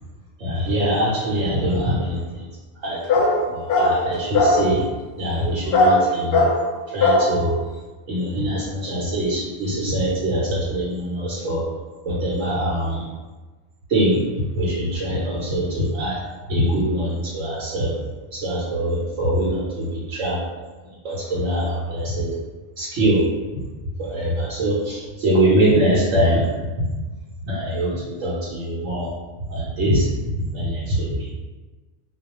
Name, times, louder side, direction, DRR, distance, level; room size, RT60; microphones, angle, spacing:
voice 1, 0.4-2.5 2.8-3.0 3.4-4.8 5.2-6.5 6.9-7.6 8.1-11.7 12.0-13.0 13.9-16.2 16.5-17.9 18.3-20.4 21.0-22.3 22.8-23.2 24.0-26.7 27.5-29.1 29.5-31.3, right 1 dB, 90° right, -8 dB, 1.0 m, -23 dB
sound 1, 3.1-3.4 3.7-4.0 4.3-4.6 5.7-6.0 6.3-6.6 7.0-7.3, left 2 dB, 60° left, 0.7 m, -17 dB
2.3 x 2.2 x 2.9 m, 1.3 s
omnidirectional pair, 1.2 m